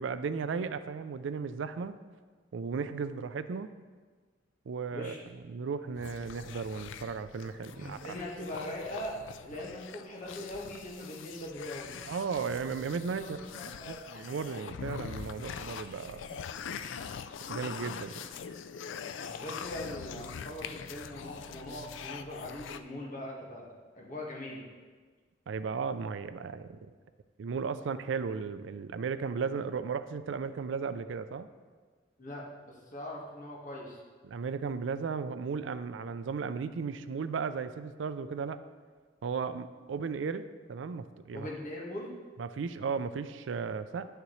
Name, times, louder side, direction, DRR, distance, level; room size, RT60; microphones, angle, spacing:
voice 1, 0.0-2.0 2.5-3.7 4.7-5.1 5.5-8.0 12.0-13.4 13.9-16.4 17.5-18.1 25.5-26.9 27.4-31.5 34.2-38.6 39.2-41.5 42.4-44.1, right 5 dB, 85° right, 12 dB, 0.4 m, -35 dB
sound 1, 5.9-22.8, left 7 dB, 85° left, 0.4 m, -43 dB
voice 2, 7.7-11.9 13.1-14.0 19.2-24.6 32.2-34.0 41.3-42.1, left 1 dB, 45° left, -3 dB, 1.6 m, -41 dB
10.0 x 6.6 x 3.1 m, 1.5 s
head